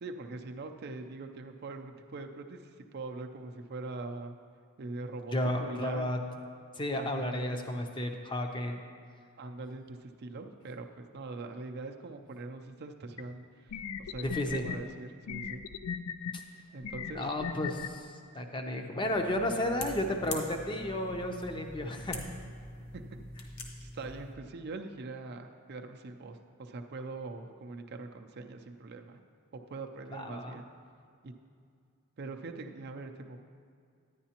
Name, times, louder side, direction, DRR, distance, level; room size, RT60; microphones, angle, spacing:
voice 1, 0.0-4.4 4.8-5.3 5.6-6.1 6.9-7.5 9.4-15.6 16.7-17.2 22.9-23.2 23.8-29.2 29.5-30.6 31.2-31.3 32.2-33.4, right 3 dB, 45° right, 5 dB, 0.5 m, -42 dB
voice 2, 5.3-6.2 6.7-8.8 14.2-14.7 16.3-16.4 17.1-22.2 30.1-30.6, left 1 dB, 20° left, 4 dB, 0.6 m, -33 dB
sound 1, 13.2-13.3 13.7-14.8 15.3-16.3 16.8-17.9, left 7 dB, 85° left, 0.4 m, -37 dB
sound 2, 19.0-24.4, left 2 dB, 45° left, 0.9 m, -44 dB
10.0 x 10.0 x 2.9 m, 2.3 s
head